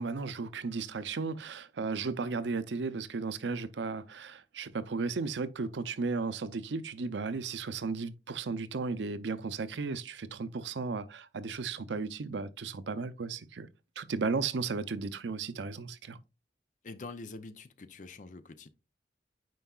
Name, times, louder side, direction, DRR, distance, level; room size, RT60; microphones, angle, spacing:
voice 1, 0.0-13.7 14.0-16.2, right 4 dB, 90° right, 0.6 m, -35 dB
voice 2, 16.8-18.7, left 3 dB, 45° left, 0.5 m, -45 dB
9.2 x 4.6 x 2.3 m
head